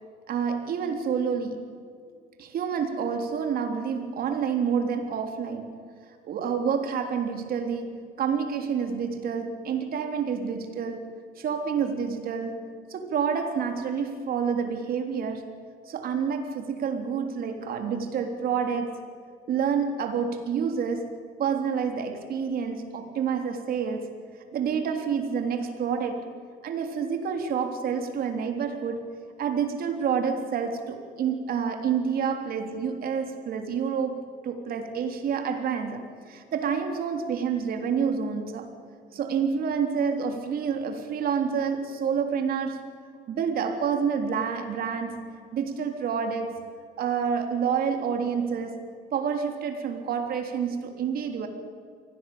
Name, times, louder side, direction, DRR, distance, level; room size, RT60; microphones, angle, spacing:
voice 1, 0.3-1.6 2.4-5.7 6.2-11.0 11.4-12.6 12.9-15.4 15.9-19.0 19.5-21.1 21.4-24.1 24.5-26.2 26.6-38.7 39.1-42.8 43.3-45.2 45.5-46.6 47.0-48.8 49.1-51.5, right 6 dB, 60° right, 5 dB, 3.6 m, -28 dB
24.0 x 17.5 x 8.7 m, 2.2 s
cardioid pair, 110°, 17 cm